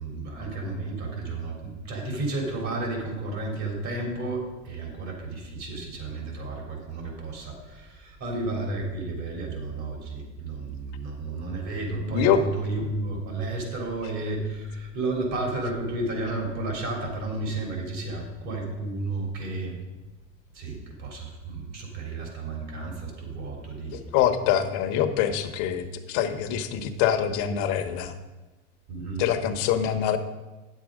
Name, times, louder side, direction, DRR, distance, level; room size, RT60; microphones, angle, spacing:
voice 1, 0.0-19.8 20.5-24.0 28.9-29.3, right 2 dB, 50° right, 0 dB, 3.5 m, -32 dB
voice 2, 12.0-12.4 23.9-28.1 29.2-30.2, left 9 dB, 60° left, 7 dB, 1.1 m, -25 dB
9.1 x 7.5 x 5.1 m, 1.2 s
supercardioid pair, 115°, 36 cm